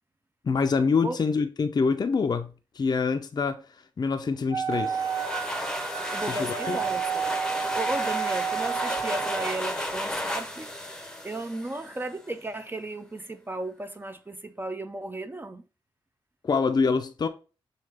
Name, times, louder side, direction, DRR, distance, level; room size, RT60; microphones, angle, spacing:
voice 1, 0.4-3.6 4.0-5.0 6.3-6.8 16.4-17.3, left 5 dB, 45° left, 0.4 m, -25 dB
Wind instrument woodwind instrument, 4.5-9.5, right 7 dB, 65° right, 1.1 m, -31 dB
sound 1, 4.7-12.2, left 1 dB, 5° left, 0.7 m, -33 dB
voice 2, 6.0-7.3 7.7-10.7 11.2-15.6, right 2 dB, 20° right, 0.4 m, -35 dB
6.4 x 2.3 x 3.3 m
wide cardioid pair, 85°, 10 cm